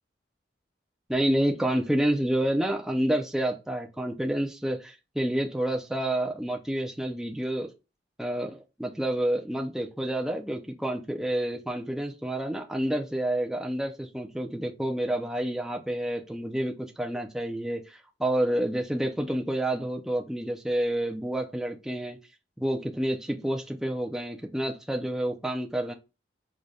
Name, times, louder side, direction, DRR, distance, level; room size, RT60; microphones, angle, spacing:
voice 1, 1.1-7.7 8.2-22.2 22.6-25.9, right 1 dB, ahead, 0.3 m, -29 dB
4.7 x 2.1 x 2.6 m
head